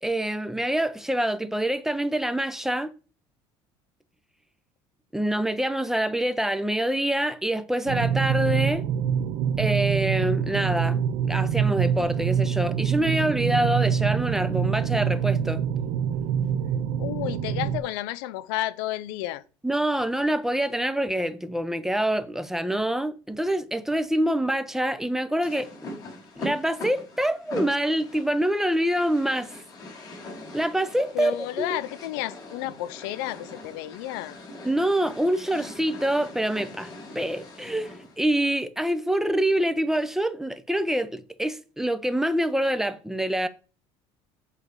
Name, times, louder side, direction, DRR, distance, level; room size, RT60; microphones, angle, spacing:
voice 1, 0.0-2.9 5.1-8.9 9.6-15.6 19.6-25.9 26.4-29.6 30.5-31.8 34.6-43.5, right 1 dB, 5° right, 0.7 m, -26 dB
sound 1, 7.9-17.8, right 8 dB, 70° right, 0.9 m, -25 dB
voice 2, 17.0-19.4 31.1-34.4, left 15 dB, 85° left, 0.6 m, -31 dB
sound 2, 25.4-38.2, left 1 dB, 30° left, 5.1 m, -41 dB
8.5 x 4.1 x 6.8 m
supercardioid pair, 110°, 12 cm